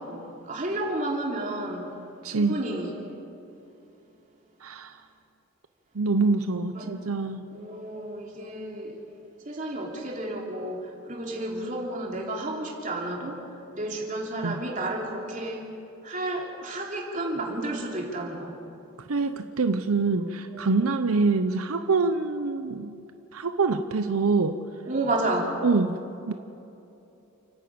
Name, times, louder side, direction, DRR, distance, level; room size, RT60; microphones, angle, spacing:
voice 1, 0.0-1.9 2.3-3.1 6.7-7.0 7.5-9.0 9.4-13.4 13.7-15.7 16.0-18.6 20.5-20.7 24.9-25.6, right 1 dB, 35° right, -1 dB, 3.4 m, -31 dB
voice 2, 2.2-2.6 4.6-5.0 5.9-7.4 14.4-14.6 19.1-23.1 23.3-24.5 25.6-26.0 26.3-26.4, right 4 dB, 80° right, 8 dB, 0.7 m, -25 dB
29.5 x 10.5 x 8.7 m, 2.9 s
head